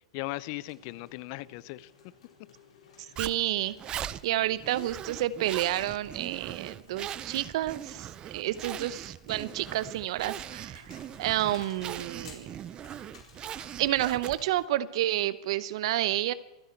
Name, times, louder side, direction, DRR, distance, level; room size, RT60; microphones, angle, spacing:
voice 1, 0.1-1.9 3.0-3.2 4.4-4.5, left 19 dB, 50° left, 20 dB, 0.6 m, -38 dB
sound 1, 0.6-14.6, left 6 dB, 80° left, 4.4 m, -56 dB
voice 2, 3.0-12.6 13.8-16.3, right 14 dB, 60° right, 17 dB, 0.8 m, -30 dB
Zipper (clothing), 3.2-14.6, right 10 dB, 25° right, 0.5 m, -40 dB
25.0 x 10.0 x 4.5 m, 0.97 s
hypercardioid pair, 120°, 3 cm